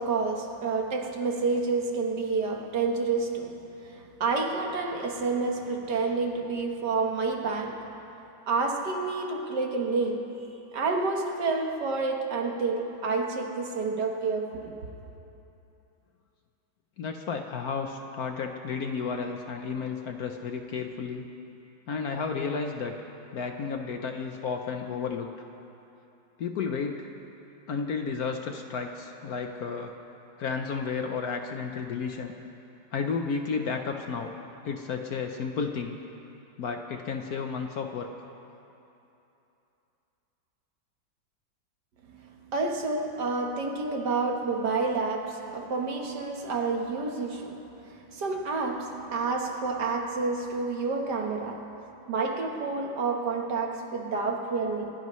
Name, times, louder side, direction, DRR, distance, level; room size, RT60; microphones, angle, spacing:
voice 1, 0.0-7.9 8.5-10.3 10.7-14.8 42.1-51.7 52.1-54.9, right 4 dB, 60° right, 1.8 m, -29 dB
voice 2, 17.0-21.3 21.9-22.9 23.3-25.5 26.4-27.1 27.7-29.9 30.4-32.3 32.9-34.3 34.6-36.0 36.6-38.1, left 5 dB, 60° left, 1.1 m, -32 dB
28.0 x 16.5 x 3.1 m
omnidirectional pair, 2.1 m